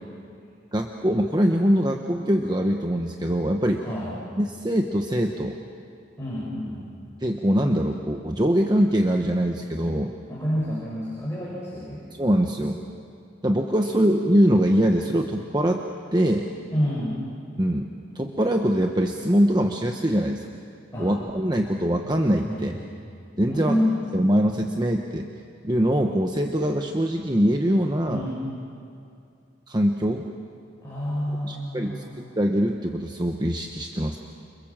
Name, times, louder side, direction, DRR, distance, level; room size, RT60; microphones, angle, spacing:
voice 1, 0.7-3.8 4.4-5.6 7.2-10.1 12.2-12.8 13.4-15.8 16.1-16.5 17.6-17.9 18.1-20.5 21.0-22.8 23.4-23.8 24.1-25.3 25.6-28.3 29.7-30.3 31.4-34.2, equal, 20° right, 3 dB, 1.0 m, -23 dB
voice 2, 3.8-4.1 6.2-6.8 10.3-12.1 16.7-17.2 20.9-21.1 22.5-22.7 23.5-24.0 28.1-28.4 30.8-32.2, equal, 15° left, -8 dB, 7.3 m, -28 dB
29.0 x 26.5 x 7.5 m, 2.5 s
head